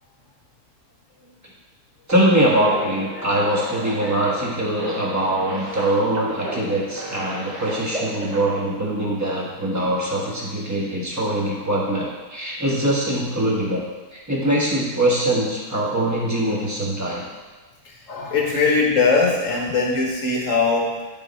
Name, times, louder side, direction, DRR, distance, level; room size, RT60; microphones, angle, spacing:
voice 1, 2.1-13.8 14.3-17.3, right 1 dB, 10° right, -4 dB, 1.3 m, -22 dB
sound 1, 2.1-8.6, right 1 dB, 30° right, 1.1 m, -34 dB
voice 2, 18.1-21.0, left 4 dB, 55° left, -1 dB, 1.4 m, -20 dB
11.5 x 4.1 x 4.2 m, 1.4 s
omnidirectional pair, 1.7 m